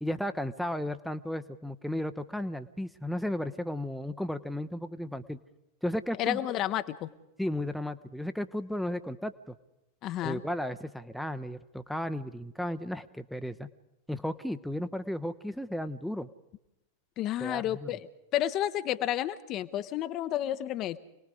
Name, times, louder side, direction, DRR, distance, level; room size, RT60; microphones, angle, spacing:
voice 1, 0.0-5.4 5.8-6.4 7.4-9.5 10.2-13.7 14.1-16.3 17.4-17.9, left 1 dB, ahead, 9 dB, 0.8 m, -34 dB
voice 2, 6.2-7.1 10.0-10.4 17.2-18.0 18.3-21.0, left 12 dB, 35° left, 12 dB, 0.9 m, -31 dB
27.0 x 20.0 x 4.9 m, 0.90 s
figure-of-eight pair, 90°, 0 cm